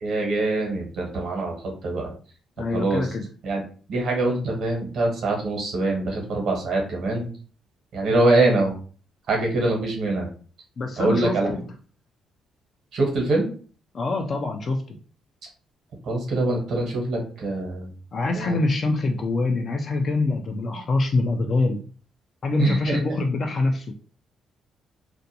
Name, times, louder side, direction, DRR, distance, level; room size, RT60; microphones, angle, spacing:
voice 1, 0.0-2.1 2.7-3.1 3.4-3.6 3.9-7.3 7.9-8.7 9.3-10.3 11.0-11.5 12.9-13.5 16.0-17.9 18.3-18.6 22.6-23.0, right 2 dB, 70° right, 0 dB, 1.1 m, -24 dB
voice 2, 2.6-3.2 10.8-11.6 13.9-15.0 18.1-21.8 22.4-23.9, left 3 dB, 50° left, 2 dB, 0.4 m, -24 dB
2.5 x 2.2 x 2.7 m, 0.40 s
cardioid pair, 90°, 0 cm